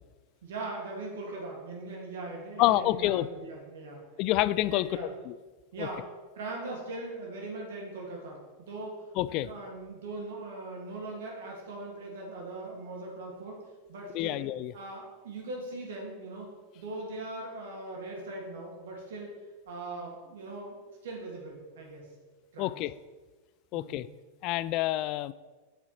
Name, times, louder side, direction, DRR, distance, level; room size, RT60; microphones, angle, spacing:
voice 1, 0.4-4.0 4.7-5.1 5.7-6.0 6.4-9.0 9.3-13.6 13.9-14.4 14.7-16.5 16.7-20.8 21.0-22.0 22.5-22.8 23.7-24.1, right 2 dB, 60° right, -1 dB, 2.4 m, -40 dB
voice 2, 2.6-3.3 4.2-5.3 5.8-5.9 9.2-9.5 14.1-14.7 22.6-22.9 23.7-24.1 24.4-25.3, left 15 dB, 40° left, 17 dB, 0.3 m, -28 dB
8.1 x 6.9 x 4.4 m, 1.3 s
figure-of-eight pair, 90°, 0 cm